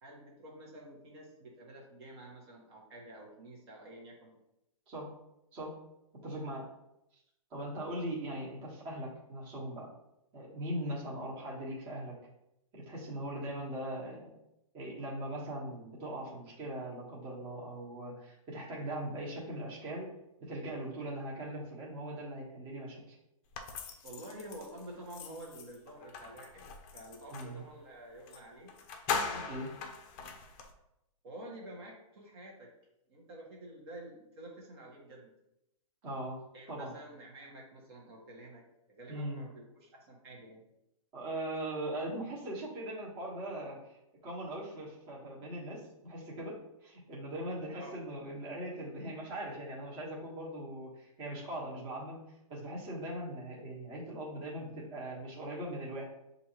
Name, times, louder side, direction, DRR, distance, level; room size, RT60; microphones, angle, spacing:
voice 1, 0.0-4.3 24.0-26.7 26.9-28.7 29.2-29.7 31.2-32.7 33.1-35.3 36.5-38.6 38.9-40.6 47.7-48.0, right 1 dB, 45° right, -2 dB, 1.2 m, -49 dB
voice 2, 6.2-6.6 7.1-7.2 7.5-9.9 10.3-12.1 12.7-14.3 14.7-20.1 20.4-23.1 27.3-27.6 29.3-29.7 36.0-36.4 36.7-36.9 39.1-39.4 41.1-46.5 46.8-52.2 52.5-56.0, right 1 dB, 25° right, -4 dB, 1.3 m, -40 dB
sound 1, 23.5-27.6 28.3-28.4 28.7-30.7, left 5 dB, 25° left, 0.5 m, -40 dB
6.1 x 2.6 x 3.0 m, 0.86 s
hypercardioid pair, 150°, 18 cm